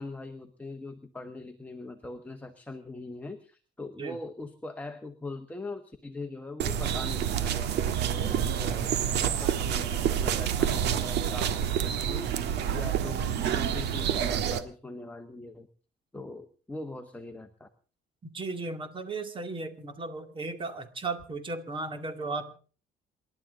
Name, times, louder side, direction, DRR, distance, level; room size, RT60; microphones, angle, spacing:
voice 1, 0.0-12.3 12.7-15.7 16.1-17.7, left 2 dB, 10° left, 5 dB, 1.3 m, -41 dB
sound 1, 6.6-14.6, right 9 dB, 85° right, 1.5 m, -28 dB
voice 2, 18.2-22.5, right 3 dB, 30° right, 8 dB, 2.3 m, -35 dB
27.5 x 12.0 x 3.8 m, 0.39 s
cardioid pair, 145°, 17 cm